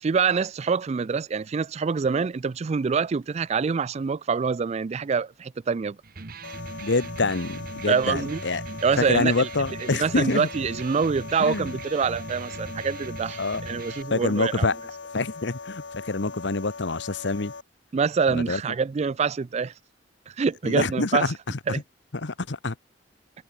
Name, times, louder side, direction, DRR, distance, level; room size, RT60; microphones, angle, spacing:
voice 1, 0.0-6.0 7.9-8.4 8.8-9.5 9.8-14.7 17.9-19.7 20.3-21.3 21.7-21.8, right 5 dB, 35° right, 0.4 m, -25 dB
Electric guitar, 6.0-14.0, right 3 dB, 50° right, 1.1 m, -39 dB
sound 1, 6.4-17.6, left 4 dB, 85° left, 1.4 m, -40 dB
voice 2, 6.8-8.6 9.0-10.5 11.4-11.8 13.4-13.6 14.1-14.8 15.1-17.5 18.3-18.6 20.6-21.8 22.1-22.7, left 3 dB, 70° left, 1.1 m, -26 dB
head